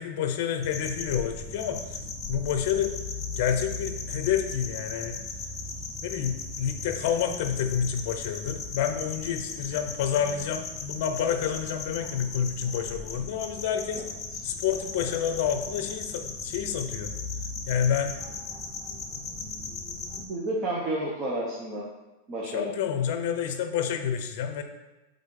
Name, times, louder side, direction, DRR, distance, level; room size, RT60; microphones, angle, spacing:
voice 1, 0.0-2.0 2.3-2.9 3.3-5.2 6.0-14.0 14.4-17.1 17.7-18.2 22.5-24.6, left 8 dB, 50° left, 7 dB, 0.7 m, -29 dB
sound 1, 0.6-20.2, left 3 dB, 15° left, 0.7 m, -37 dB
voice 2, 20.3-21.8 22.3-22.7, right 1 dB, 25° right, -4 dB, 0.8 m, -30 dB
8.1 x 3.7 x 3.8 m, 1.1 s
supercardioid pair, 165°, 0 cm